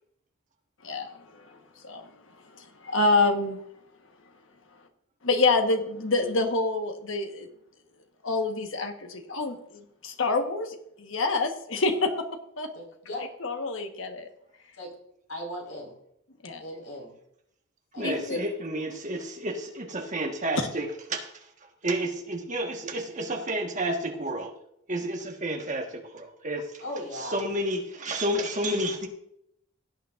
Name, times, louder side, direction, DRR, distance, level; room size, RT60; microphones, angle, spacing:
voice 1, 0.8-2.1 2.4-3.6 5.2-7.5 8.2-12.3 12.6-12.7 13.2-14.3 16.4-16.6 18.0-18.4, left 3 dB, 65° left, 5 dB, 1.3 m, -27 dB
voice 2, 12.7-13.2 14.8-14.9 15.3-15.9 16.6-17.1 17.9-18.4 26.8-27.4, left 1 dB, 80° left, -1 dB, 4.9 m, -38 dB
voice 3, 18.0-21.4 21.8-24.5 24.9-26.8 27.1-29.1, right 1 dB, 35° right, 2 dB, 1.5 m, -31 dB
17.0 x 8.9 x 2.5 m, 0.75 s
head